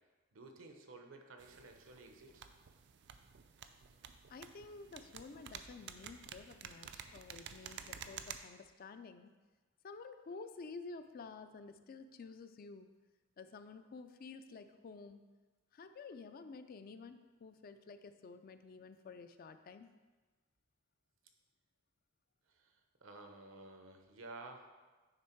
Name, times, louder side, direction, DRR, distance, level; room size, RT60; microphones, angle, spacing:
voice 1, 0.3-2.5 7.8-7.9 22.5-24.7, right 2 dB, 80° right, 4 dB, 0.9 m, -53 dB
sound 1, 1.4-8.4, right 8 dB, 60° right, 0.4 m, -51 dB
voice 2, 4.3-9.3 9.8-12.9 13.4-15.2 15.7-19.9, left 4 dB, 50° left, 9 dB, 0.4 m, -51 dB
9.7 x 3.5 x 4.5 m, 1.3 s
head